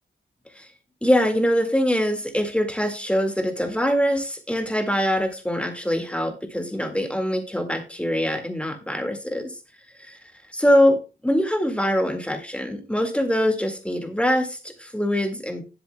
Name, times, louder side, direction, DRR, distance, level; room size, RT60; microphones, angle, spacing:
voice 1, 1.0-9.5 10.0-10.2 10.5-11.0 11.2-15.6, equal, 5° left, 5 dB, 2.0 m, -23 dB
19.0 x 7.6 x 2.3 m, 0.31 s
wide cardioid pair, 120°, 21 cm